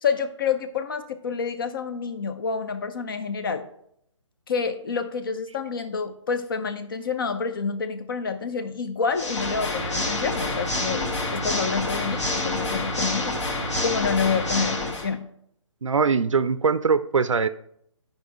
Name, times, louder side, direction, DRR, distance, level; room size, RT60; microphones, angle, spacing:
voice 1, 0.0-3.7 4.5-11.0 11.3-13.4 13.8-15.3, left 5 dB, 40° left, 10 dB, 0.7 m, -28 dB
Water / Mechanisms, 9.1-15.1, left 2 dB, 60° left, 2.0 m, -27 dB
voice 2, 15.8-17.5, right 5 dB, 70° right, 13 dB, 0.5 m, -22 dB
11.0 x 5.2 x 3.0 m, 0.72 s
figure-of-eight pair, 140°, 17 cm